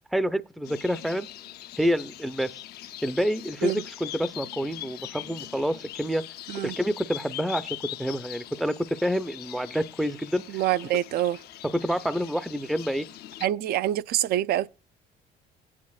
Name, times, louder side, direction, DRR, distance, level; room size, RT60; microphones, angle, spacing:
voice 1, 0.1-1.3 1.8-2.6 3.0-6.2 6.6-10.4 11.6-13.1, equal, ahead, 0.5 m, -28 dB
sound 1, 0.6-13.5, left 14 dB, 70° left, 0.6 m, -42 dB
voice 2, 10.5-11.4 13.4-14.7, right 13 dB, 65° right, 0.4 m, -26 dB
19.0 x 9.6 x 2.3 m
cardioid pair, 110°, 17 cm